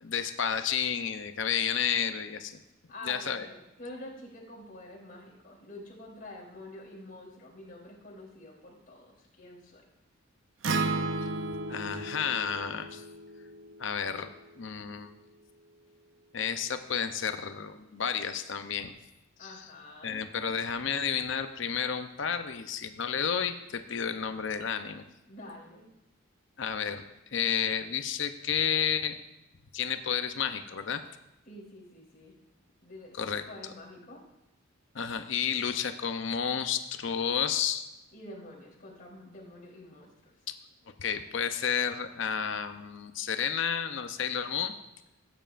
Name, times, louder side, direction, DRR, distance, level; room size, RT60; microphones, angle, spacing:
voice 1, 0.0-2.6 3.0-3.5 11.7-13.0 13.8-14.3 14.6-15.1 16.3-18.9 19.4-19.7 20.0-25.0 26.6-27.0 27.3-29.2 29.7-31.0 33.2-33.7 34.9-37.9 41.0-44.7, left 7 dB, 60° left, 8 dB, 0.6 m, -31 dB
voice 2, 2.9-9.8 19.4-20.2 25.3-25.9 31.5-32.3 32.8-33.2 33.5-34.2 38.1-40.3, left 1 dB, 45° left, -4 dB, 3.5 m, -47 dB
Acoustic guitar, 10.6-14.9, right 3 dB, 65° right, 0.6 m, -34 dB
17.5 x 9.1 x 2.5 m, 0.94 s
head